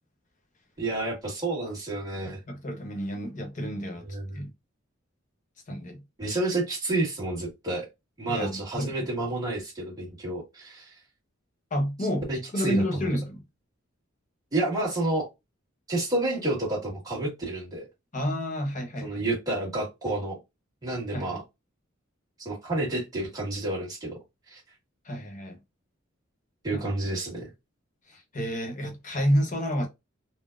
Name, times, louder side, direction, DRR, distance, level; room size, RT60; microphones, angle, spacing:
voice 1, 0.8-2.4 4.1-4.4 6.2-7.9 8.2-10.9 12.3-12.8 14.5-15.3 15.9-17.8 19.0-20.4 20.8-21.4 22.4-24.1 24.5-24.6 26.6-27.5, right 2 dB, 20° right, 1.4 m, -30 dB
voice 2, 2.2-4.0 4.3-4.5 5.7-6.0 8.3-8.9 11.7-13.4 18.1-19.2 21.1-21.4 25.0-25.6 26.7-26.9 28.1-29.9, equal, 40° left, 0.8 m, -30 dB
3.9 x 2.0 x 2.4 m
head